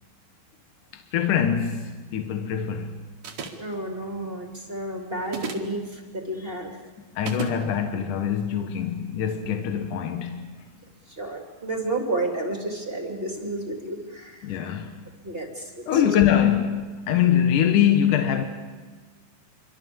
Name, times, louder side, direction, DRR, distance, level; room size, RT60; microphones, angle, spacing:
voice 1, 0.9-3.1 7.2-10.5 14.4-15.1 15.9-18.4, left 9 dB, 65° left, 2.6 m, -23 dB
sound 1, 3.2-3.7 5.3-5.7 7.3-7.6, right 6 dB, 60° right, 3.4 m, -34 dB
voice 2, 3.6-6.7 9.4-9.5 11.1-14.8 15.2-16.1, right 2 dB, 15° right, 2.8 m, -31 dB
26.5 x 24.5 x 7.2 m
omnidirectional pair, 4.3 m